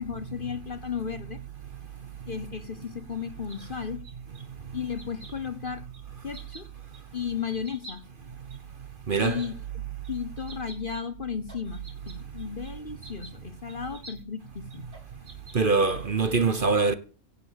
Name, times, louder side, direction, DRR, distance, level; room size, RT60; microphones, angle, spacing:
voice 1, 0.0-1.4 2.3-4.0 4.7-5.9 6.2-6.7 7.1-8.0 9.2-14.9, left 7 dB, 40° left, 1.0 m, -34 dB
sound 1, 3.5-4.4 5.0-5.3 5.9-6.0 6.3-6.6 6.9-7.0 7.6-7.9 8.5-8.6 9.2-9.5 10.0-10.1 10.4-11.0 11.4-12.7 13.0-13.3 13.7-14.2 14.7-15.7, right 2 dB, 75° right, 4.2 m, -47 dB
voice 2, 9.1-9.5 15.5-16.9, right 4 dB, 40° right, 1.1 m, -23 dB
17.5 x 7.0 x 7.6 m
omnidirectional pair, 1.5 m